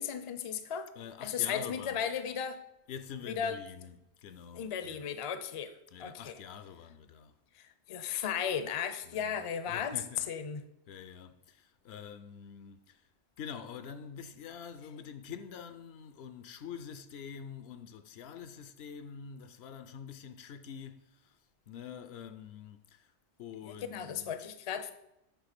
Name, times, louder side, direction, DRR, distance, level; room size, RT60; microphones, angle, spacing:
voice 1, 0.0-0.9 1.2-2.6 3.3-3.6 4.5-5.7 6.0-6.4 7.6-10.0 10.3-10.6 23.6-24.9, left 8 dB, 40° left, 0.5 m, -35 dB
voice 2, 1.0-2.1 2.9-5.1 5.9-7.3 9.1-10.3 10.9-13.0 13.4-21.4 21.7-23.1 23.4-24.4, left 7 dB, 75° left, 0.8 m, -46 dB
8.3 x 3.3 x 5.9 m
omnidirectional pair, 1.1 m